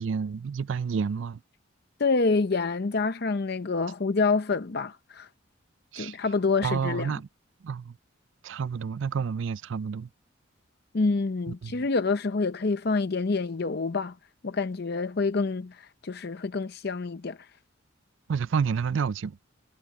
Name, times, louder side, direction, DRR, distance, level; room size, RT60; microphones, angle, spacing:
voice 1, 0.0-1.4 5.9-6.2 6.6-7.3 7.6-8.0 8.4-10.1 11.5-11.8 18.3-19.4, right 6 dB, 65° right, 0.4 m, -29 dB
voice 2, 2.0-5.3 6.0-7.1 10.9-14.1 14.4-17.4, left 4 dB, 50° left, 0.6 m, -27 dB
head